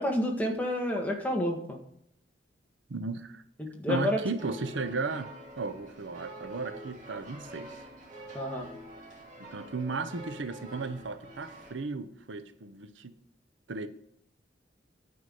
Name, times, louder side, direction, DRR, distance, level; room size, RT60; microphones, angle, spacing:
voice 1, 0.0-1.8 3.6-4.2 8.3-8.7, left 1 dB, 10° left, 1.6 m, -29 dB
voice 2, 2.9-3.4 3.9-5.3 5.6-7.8 9.4-13.1 13.7-13.9, right 3 dB, 90° right, 0.8 m, -35 dB
sound 1, 4.4-11.7, right 1 dB, 40° right, 2.8 m, -46 dB
9.4 x 5.6 x 7.7 m
head